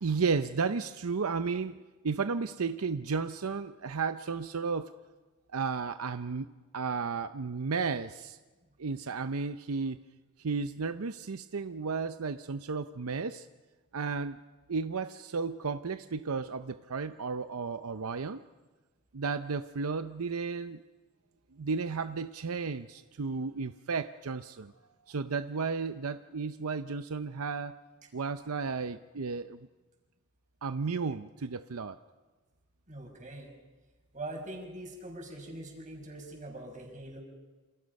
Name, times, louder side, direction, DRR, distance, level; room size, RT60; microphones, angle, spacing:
voice 1, 0.0-1.8 2.0-4.9 5.5-6.5 6.7-8.4 8.8-10.0 10.4-13.5 13.9-14.4 14.7-18.4 19.1-20.8 21.6-24.7 25.1-27.8 28.1-29.6 30.6-32.0, right 5 dB, 80° right, 11 dB, 0.7 m, -33 dB
voice 2, 32.9-33.5 34.1-37.2, right 1 dB, 35° right, 2 dB, 5.8 m, -43 dB
28.0 x 28.0 x 5.4 m, 1.3 s
head